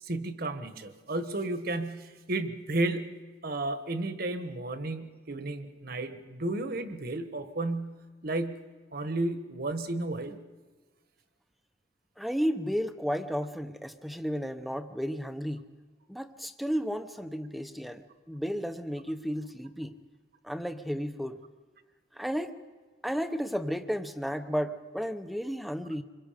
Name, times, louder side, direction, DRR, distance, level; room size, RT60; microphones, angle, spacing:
voice 1, 0.0-8.6 8.9-10.4, right 2 dB, 55° right, 9 dB, 1.4 m, -33 dB
voice 2, 12.2-15.7 16.1-20.0 20.4-21.4 22.1-22.6 23.0-26.0, equal, ahead, 9 dB, 0.8 m, -33 dB
26.5 x 22.5 x 5.2 m, 1.4 s
head